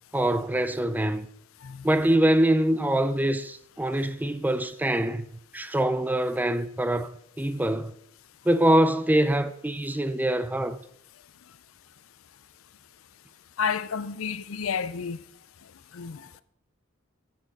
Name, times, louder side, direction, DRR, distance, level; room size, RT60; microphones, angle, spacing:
voice 1, 0.1-1.3 1.8-5.3 5.5-7.9 8.5-10.8, right 1 dB, 10° right, 0.5 m, -24 dB
voice 2, 13.6-15.2 15.9-16.4, left 6 dB, 90° left, 0.6 m, -30 dB
10.0 x 9.0 x 5.4 m
head